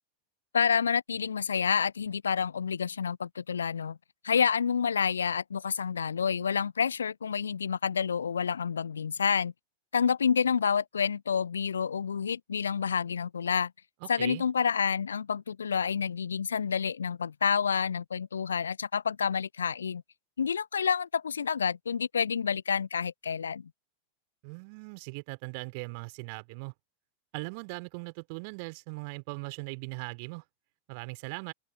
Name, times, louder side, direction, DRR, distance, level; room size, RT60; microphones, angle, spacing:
voice 1, 0.5-4.0 4.2-9.5 9.9-13.7 14.1-20.0 20.4-23.7, left 6 dB, 70° left, 0.6 m, -28 dB
voice 2, 14.0-14.4 24.4-26.7 27.3-30.4 30.9-31.5, right 33 dB, 45° right, 3.1 m, -39 dB
figure-of-eight pair, 90°, 0 cm